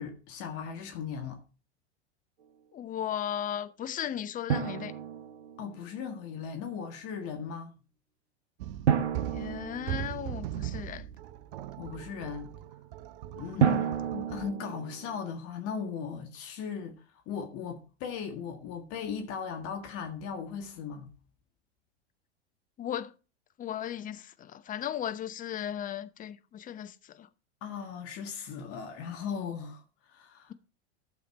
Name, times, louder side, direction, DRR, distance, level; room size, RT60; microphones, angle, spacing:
voice 1, 0.0-1.4 5.6-7.7 11.8-12.5 13.3-17.0 17.3-21.1 27.6-29.8 30.1-30.5, left 6 dB, 45° left, 1.8 m, -38 dB
voice 2, 2.7-4.9 9.3-11.0 13.5-13.9 22.8-23.1 23.6-24.3 24.5-26.9 27.2-27.3, left 10 dB, 25° left, 0.8 m, -36 dB
Drum, 4.5-6.0 8.9-10.7 13.6-15.2, right 8 dB, 75° right, 1.1 m, -30 dB
sound 1, 8.6-14.5, right 13 dB, 55° right, 0.8 m, -39 dB
12.0 x 7.0 x 4.2 m
figure-of-eight pair, 90°, 34 cm